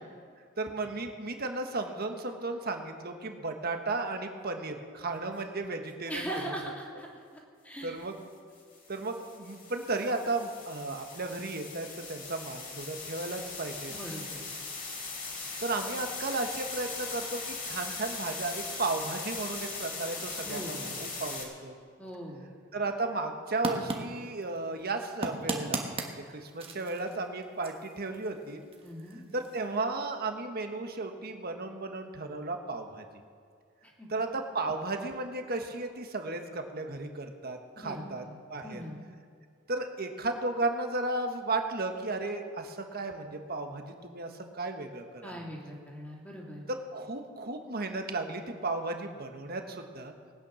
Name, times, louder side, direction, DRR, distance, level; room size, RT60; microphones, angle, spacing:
voice 1, 0.6-6.4 7.8-8.1 8.9-13.9 15.6-21.8 22.7-28.6 29.1-33.0 34.1-38.2 38.5-38.8 39.7-45.4 46.7-50.1, right 3 dB, 50° right, 5 dB, 1.4 m, -34 dB
sound 1, 6.1-6.4 8.5-21.4, left 4 dB, 45° left, 3.1 m, -40 dB
voice 2, 6.1-7.2 7.6-7.9 13.9-14.4 20.4-21.1 22.0-22.6 28.8-29.2 33.8-34.1 37.8-39.0 45.2-46.7, equal, 5° left, -2 dB, 2.7 m, -40 dB
sound 2, 23.5-29.8, right 2 dB, 30° right, 1.4 m, -39 dB
20.0 x 9.3 x 6.3 m, 2.2 s
head